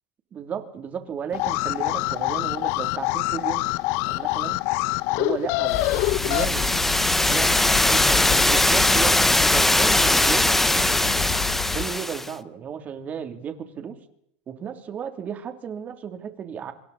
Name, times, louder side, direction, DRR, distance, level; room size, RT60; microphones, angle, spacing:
voice 1, 0.3-3.6 4.1-4.6 5.1-5.9 6.2-11.4 11.7-14.0 14.5-16.7, right 7 dB, 30° right, 6 dB, 3.1 m, -34 dB
Alarm, 1.3-6.4, left 21 dB, 60° left, 0.8 m, -25 dB
sound 1, 5.7-11.9, left 11 dB, 45° left, 1.6 m, -31 dB
sound 2, 5.8-12.3, left 1 dB, 5° left, 1.0 m, -21 dB
26.0 x 26.0 x 4.2 m, 0.68 s
supercardioid pair, 120°, 5 cm